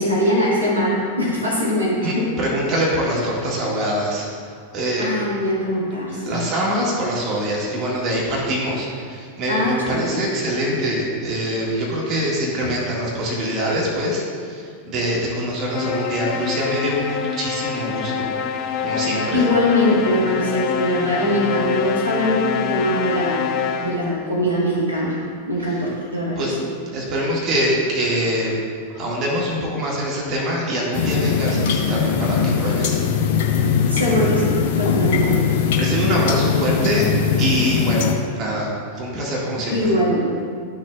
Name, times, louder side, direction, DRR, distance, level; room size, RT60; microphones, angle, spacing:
voice 1, 0.0-2.3 5.0-6.4 9.5-10.2 12.6-12.7 19.3-23.5 23.8-25.2 25.5-26.6 33.9-35.5 39.7-40.4, left 1 dB, 85° right, -6 dB, 2.2 m, -21 dB
voice 2, 2.0-5.2 6.1-18.3 18.8-19.4 26.4-26.6 26.9-28.6 28.9-33.0 35.7-37.1 37.4-39.9, equal, 35° right, -4 dB, 2.0 m, -24 dB
sound 1, 15.7-24.2, left 7 dB, 35° left, 0.5 m, -26 dB
sound 2, 30.9-38.1, left 6 dB, 50° left, 1.0 m, -20 dB
13.0 x 6.4 x 2.5 m, 2.1 s
figure-of-eight pair, 90°, 0 cm